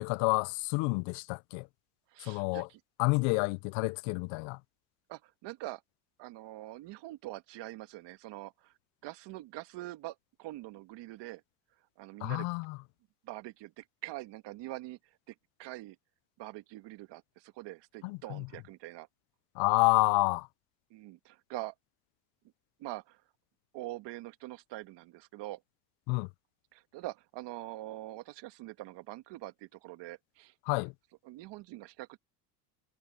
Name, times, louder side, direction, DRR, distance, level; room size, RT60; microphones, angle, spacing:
voice 1, 0.0-1.7 2.2-2.7 3.0-4.6 12.2-12.8 18.0-18.5 19.6-20.5 26.1-26.3 30.7-30.9, left 29 dB, 60° left, 0.5 m, -29 dB
voice 2, 2.1-2.8 5.1-5.8 6.2-8.7 9.0-11.4 12.0-12.5 13.2-16.0 16.4-19.1 20.9-21.7 22.8-23.2 23.7-25.6 26.7-30.5 31.2-32.2, right 17 dB, 55° right, 1.7 m, -44 dB
supercardioid pair, 120°, 50 cm